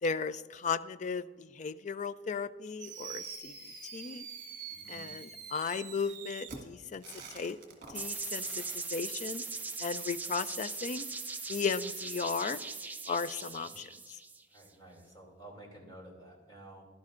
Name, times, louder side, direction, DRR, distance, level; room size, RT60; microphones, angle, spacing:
voice 1, 0.0-3.5 3.9-4.3 4.9-7.0 7.3-7.6 7.9-9.4 9.8-11.0 11.5-12.6 13.1-13.9, left 5 dB, 40° left, 15 dB, 0.4 m, -35 dB
Fireworks, 2.8-8.8, right 6 dB, 50° right, 1.7 m, -46 dB
voice 2, 4.7-5.1 13.4-13.7 14.5-16.8, right 1 dB, 25° left, -1 dB, 2.7 m, -52 dB
sound 1, 8.0-14.7, right 4 dB, 10° right, 0.5 m, -40 dB
15.0 x 11.5 x 2.5 m, 1.3 s
head